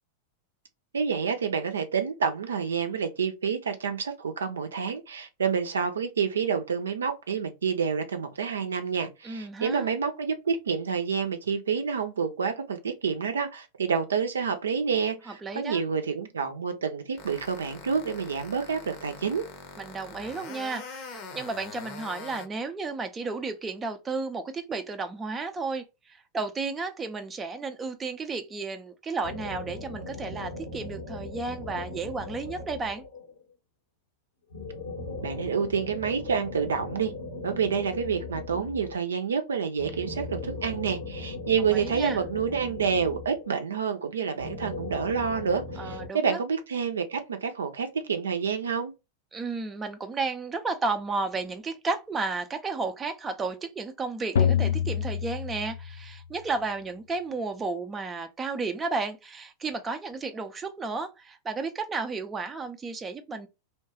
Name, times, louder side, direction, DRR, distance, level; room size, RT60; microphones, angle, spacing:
voice 1, 0.9-19.4 35.2-37.1 37.4-48.9, right 6 dB, 70° right, 0.5 m, -28 dB
voice 2, 9.2-9.9 15.3-15.8 19.8-33.0 41.7-42.2 45.8-46.4 49.3-63.5, right 4 dB, 20° right, 0.4 m, -33 dB
sound 1, 17.2-22.5, left 4 dB, 45° left, 0.7 m, -43 dB
sound 2, 29.2-33.4 34.5-39.2 39.8-43.8 44.4-46.1, left 2 dB, 85° left, 1.0 m, -38 dB
sound 3, 54.4-56.3, left 8 dB, 60° left, 0.3 m, -26 dB
2.8 x 2.2 x 2.8 m
figure-of-eight pair, 90°, 0 cm